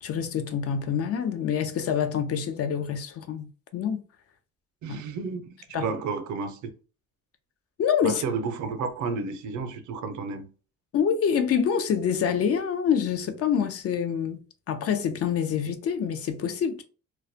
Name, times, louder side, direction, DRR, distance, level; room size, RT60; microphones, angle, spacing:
voice 1, 0.0-4.0 4.9-5.0 5.7-5.9 7.8-8.2 10.9-16.8, left 7 dB, 50° left, 0.5 m, -26 dB
voice 2, 4.8-6.7 8.0-10.5, right 4 dB, 75° right, 0.5 m, -32 dB
2.2 x 2.1 x 2.6 m
cardioid pair, 90°, 30 cm